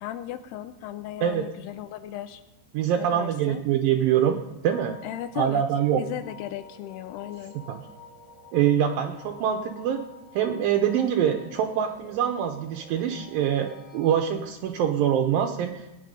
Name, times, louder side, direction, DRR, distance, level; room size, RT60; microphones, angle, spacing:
voice 1, 0.0-2.4 3.0-3.6 5.0-5.6 6.0-7.6, left 12 dB, 80° left, 11 dB, 2.4 m, -36 dB
voice 2, 2.7-5.0 5.4-6.0 7.7-7.8 8.5-10.0 10.3-15.9, right 9 dB, 80° right, 4 dB, 2.1 m, -24 dB
sound 1, 4.7-14.5, left 2 dB, 35° left, 2.3 m, -49 dB
20.0 x 9.8 x 5.3 m, 0.96 s
omnidirectional pair, 5.1 m